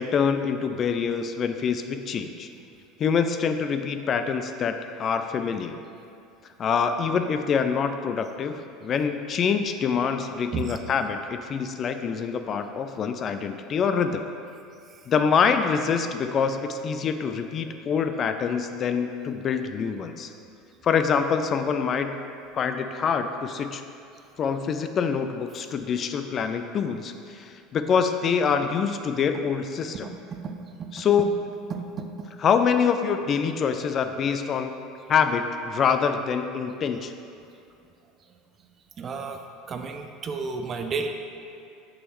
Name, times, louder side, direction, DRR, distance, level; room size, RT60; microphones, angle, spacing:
voice 1, 0.0-2.5 3.0-5.8 6.6-14.2 15.1-20.3 20.8-22.1 22.5-23.8 24.4-30.1 30.9-31.3 32.4-34.7 35.1-37.1, left 6 dB, 40° left, 8 dB, 0.4 m, -25 dB
voice 2, 31.7-32.1 39.0-39.4 39.7-41.1, right 5 dB, 40° right, 5 dB, 0.6 m, -32 dB
6.2 x 6.1 x 3.1 m, 2.6 s
hypercardioid pair, 90°, 0 cm